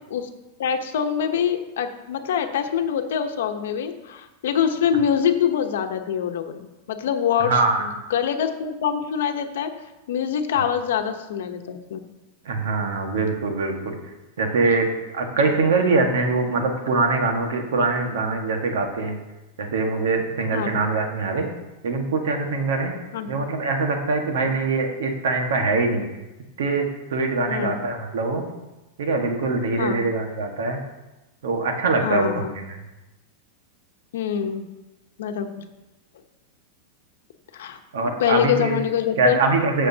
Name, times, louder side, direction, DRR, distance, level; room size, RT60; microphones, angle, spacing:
voice 1, 0.6-7.5 7.8-9.7 10.1-12.0 20.5-20.7 23.1-23.3 27.5-27.8 29.8-30.0 32.0-32.5 34.1-34.6 35.2-35.5 37.5-37.8 38.2-39.4, left 8 dB, 70° left, 6 dB, 1.0 m, -24 dB
voice 2, 7.4-7.8 12.4-13.9 14.4-14.9 15.1-19.2 19.6-21.5 21.8-22.9 23.3-26.0 26.6-28.5 29.0-30.8 31.4-32.8 37.9-38.8 39.2-39.9, right 3 dB, 85° right, 3 dB, 1.6 m, -23 dB
15.5 x 6.3 x 2.8 m, 1.1 s
supercardioid pair, 180°, 0 cm